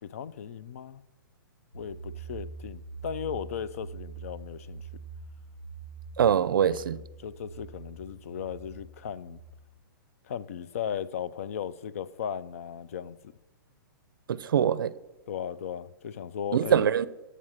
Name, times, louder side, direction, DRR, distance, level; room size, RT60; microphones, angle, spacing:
voice 1, 0.0-1.0 1.7-5.0 6.7-9.4 10.2-13.3 15.3-16.9, left 8 dB, 40° left, 0.4 m, -37 dB
sound 1, 1.7-9.5, right 5 dB, 80° left, 1.5 m, -44 dB
voice 2, 6.2-7.0 14.3-14.9 16.5-17.1, right 9 dB, 70° right, 0.5 m, -23 dB
8.2 x 6.3 x 7.2 m
hypercardioid pair, 175°, 12 cm